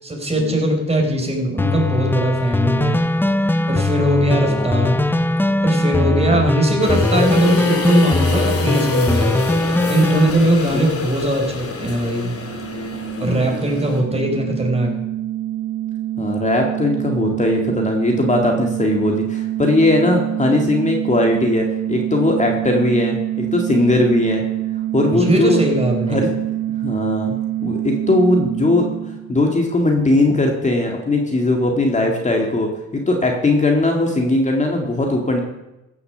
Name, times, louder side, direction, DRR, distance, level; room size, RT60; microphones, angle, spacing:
voice 1, 0.0-3.0 3.7-5.0 5.6-9.3 9.9-12.4 13.2-14.9 25.1-26.2, right 1 dB, 20° right, 1 dB, 4.2 m, -20 dB
sound 1, 1.6-10.3, left 2 dB, 5° left, 0.6 m, -20 dB
voice 2, 4.3-4.9 6.0-6.4 10.7-10.9 13.0-13.5 16.2-24.4 24.9-25.6 26.1-26.5 26.8-35.4, left 2 dB, 25° left, 1 dB, 2.0 m, -19 dB
sound 2, 6.8-14.0, left 4 dB, 50° left, 2.7 m, -26 dB
sound 3, 12.2-29.7, right 13 dB, 75° right, 1.0 m, -26 dB
15.5 x 7.1 x 6.8 m, 0.98 s
cardioid pair, 90°, 30 cm